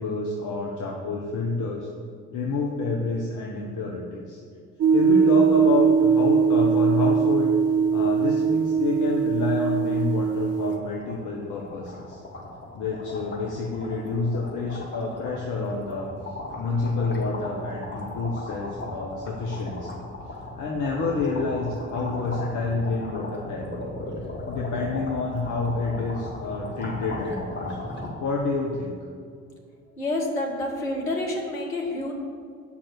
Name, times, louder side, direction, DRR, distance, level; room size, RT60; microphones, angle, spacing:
voice 1, 0.0-1.9 2.3-4.4 4.9-7.6 7.9-12.2 12.7-16.1 16.5-20.0 20.6-23.9 24.5-27.8 28.2-28.9, left 3 dB, 50° left, -1 dB, 1.3 m, -28 dB
sound 1, 4.8-10.8, right 6 dB, 35° right, 0.6 m, -21 dB
sound 2, 9.0-9.2 9.5-9.6 9.9-28.1, left 2 dB, 25° left, 2.5 m, -37 dB
voice 2, 30.0-32.1, left 1 dB, 85° left, 0 dB, 1.6 m, -28 dB
8.5 x 5.9 x 6.8 m, 2.3 s
figure-of-eight pair, 55°, 40 cm